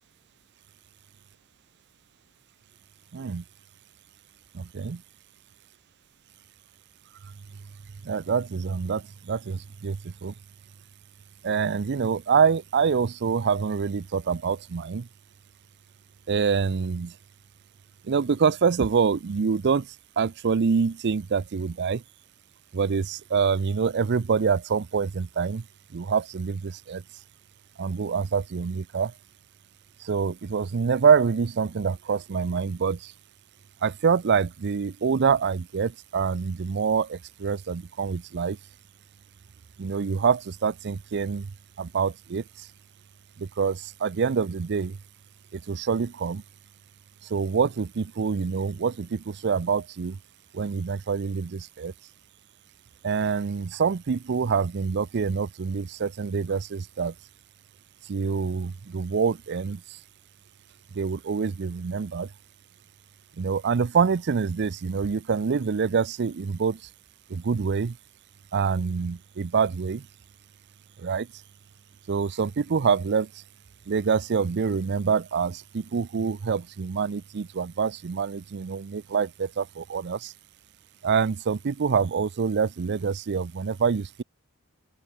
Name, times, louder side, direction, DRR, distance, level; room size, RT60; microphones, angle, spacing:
voice 1, 3.1-3.4 4.5-5.0 8.0-10.3 11.4-15.1 16.3-17.1 18.0-19.9 20.2-22.0 22.7-25.6 25.9-27.0 27.8-29.1 30.0-33.1 33.8-38.6 39.8-41.5 41.8-42.7 43.4-45.0 45.5-46.4 47.3-50.2 50.5-51.9 53.0-57.1 58.1-59.8 60.9-62.3 63.4-66.8 67.3-68.0 68.5-70.1 71.0-71.3 72.1-73.3 73.9-80.3 81.0-84.2, right 6 dB, 50° right, 0.5 m, -26 dB
open air
head